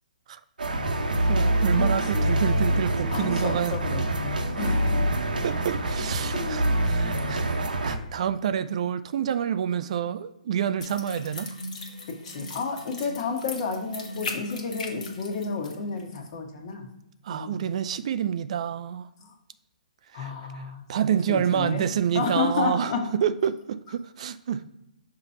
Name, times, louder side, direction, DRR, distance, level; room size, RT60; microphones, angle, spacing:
sound 1, 0.6-8.0, right 1 dB, 85° right, 0.8 m, -25 dB
voice 1, 1.3-3.7 5.4-11.5 17.2-19.1 20.1-24.6, right 9 dB, 50° right, 0.3 m, -28 dB
voice 2, 1.8-2.4 3.1-5.1 6.3-6.7 12.1-16.9 17.3-17.6 19.2-19.3 20.1-20.8 21.3-21.8 22.1-23.0, left 5 dB, 40° left, 1.3 m, -31 dB
sound 2, 10.8-15.7 16.0-16.1, left 2 dB, 65° left, 1.4 m, -38 dB
5.8 x 2.9 x 5.5 m
hypercardioid pair, 140°, 4 cm